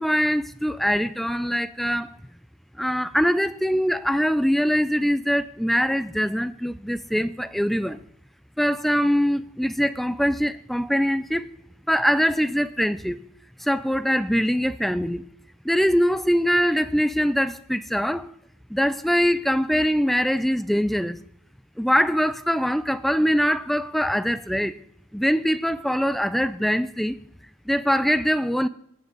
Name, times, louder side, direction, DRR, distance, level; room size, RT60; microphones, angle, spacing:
voice 1, 0.0-2.1 2.8-8.0 8.6-11.5 11.9-13.2 13.6-15.2 15.6-18.3 18.7-21.2 21.8-24.8 25.1-27.2 27.7-28.7, equal, ahead, 0.3 m, -23 dB
18.0 x 6.1 x 4.0 m
head